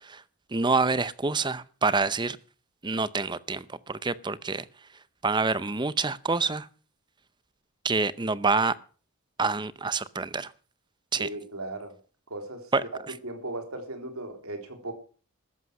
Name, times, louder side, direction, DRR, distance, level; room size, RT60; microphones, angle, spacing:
voice 1, 0.5-2.4 2.8-4.6 5.2-6.7 7.8-8.7 9.4-10.5 11.1-11.3 12.7-12.8, right 4 dB, 20° right, 16 dB, 0.6 m, -27 dB
voice 2, 11.2-12.0 12.3-12.7 13.2-14.9, right 2 dB, 80° right, 5 dB, 3.7 m, -37 dB
14.0 x 11.5 x 6.3 m, 0.39 s
head